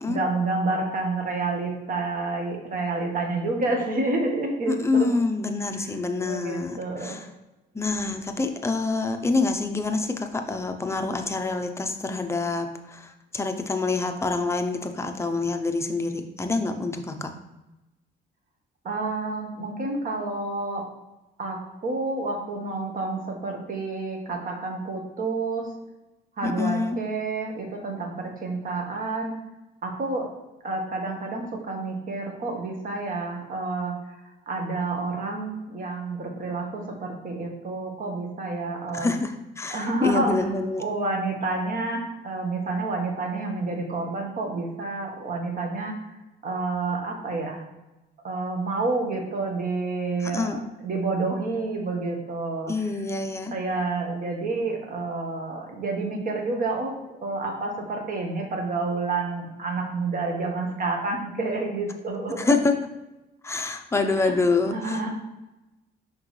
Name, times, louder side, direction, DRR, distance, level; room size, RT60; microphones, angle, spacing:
voice 1, 0.1-5.1 6.2-7.2 18.8-20.8 21.4-25.7 26.4-29.3 29.8-30.3 30.6-34.2 34.5-39.1 39.7-40.5 40.8-45.9 46.4-47.6 48.2-50.5 50.8-52.7 53.5-56.9 57.2-62.5 64.2-64.3 64.7-65.1, right 3 dB, 45° right, 2 dB, 1.4 m, -29 dB
voice 2, 4.7-7.3 7.7-17.3 26.4-27.0 38.9-40.8 50.2-50.6 52.7-53.5 62.4-62.8 63.4-65.0, left 3 dB, 15° left, 5 dB, 0.6 m, -26 dB
6.2 x 5.4 x 3.2 m, 1.0 s
cardioid pair, 135°, 19 cm